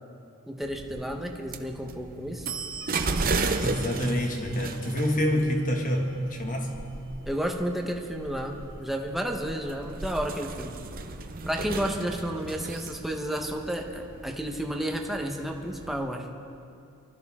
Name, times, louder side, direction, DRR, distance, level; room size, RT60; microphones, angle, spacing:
voice 1, 0.5-2.5 7.2-10.8 11.4-16.3, equal, ahead, 1 dB, 1.0 m, -31 dB
sound 1, 0.6-16.0, right 3 dB, 40° right, 0.8 m, -35 dB
voice 2, 3.6-6.8, equal, 35° left, 1 dB, 1.8 m, -27 dB
24.0 x 13.5 x 3.7 m, 2.5 s
head